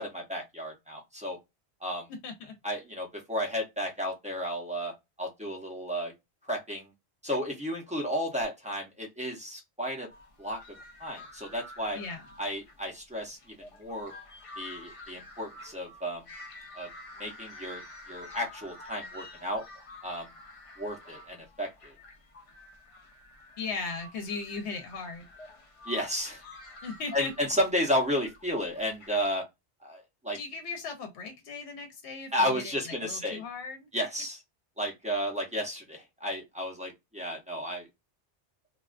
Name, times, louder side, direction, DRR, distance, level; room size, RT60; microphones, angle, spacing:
voice 1, 0.0-1.4 1.8-2.1 2.6-4.9 5.2-6.1 6.5-6.9 7.2-10.1 10.4-12.0 12.4-14.1 14.6-16.2 16.7-16.9 17.2-17.8 18.1-19.6 20.0-20.3 20.8-21.9 25.9-26.4 27.1-29.4 29.8-30.4 32.3-33.4 33.9-34.4 34.8-37.9, equal, 10° right, 0.4 m, -33 dB
voice 2, 2.2-2.5 11.9-12.2 23.6-25.3 26.8-27.3 30.3-32.7 33.0-33.9, left 4 dB, 70° left, 0.9 m, -37 dB
sound 1, 10.1-29.3, left 2 dB, 50° left, 0.4 m, -49 dB
2.3 x 2.2 x 2.3 m
omnidirectional pair, 1.2 m